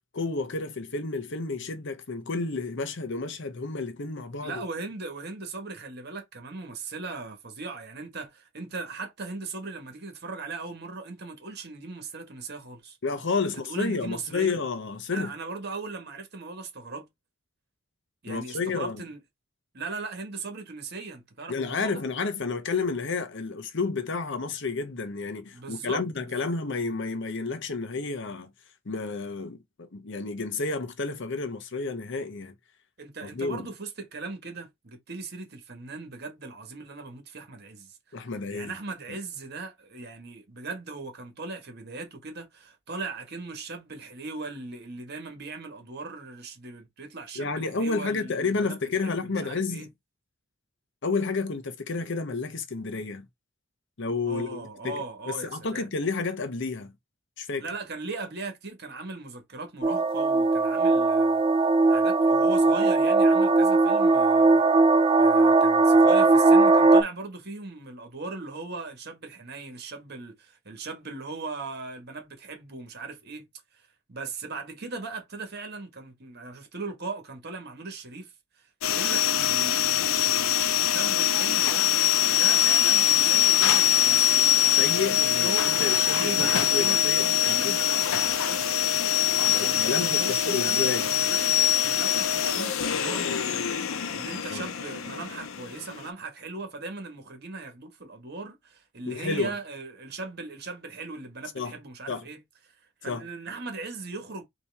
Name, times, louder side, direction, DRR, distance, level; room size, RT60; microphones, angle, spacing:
voice 1, 0.1-4.6 13.0-15.3 18.3-19.0 21.5-28.5 28.8-32.5 33.2-33.6 38.1-38.7 47.4-49.9 51.0-53.3 54.0-56.9 57.4-57.7 84.7-87.8 89.4-91.1 94.5-94.7 99.1-99.5 101.5-101.8 102.1-102.3 103.1-103.2, left 4 dB, 60° left, 0.8 m, -31 dB
voice 2, 4.4-13.0 13.4-14.6 15.1-17.1 18.2-19.2 19.7-22.0 25.5-26.5 33.0-38.0 38.5-49.9 54.2-55.9 57.6-61.4 61.9-64.6 65.2-73.5 73.7-78.3 78.6-81.9 82.3-84.4 84.9-88.7 89.6-93.7 94.1-102.4 103.0-104.4, right 3 dB, 55° right, 1.6 m, -38 dB
sound 1, 59.8-67.0, right 3 dB, 25° right, 0.4 m, -19 dB
sound 2, 78.8-96.1, left 11 dB, 90° left, 0.6 m, -23 dB
4.2 x 3.0 x 3.4 m
head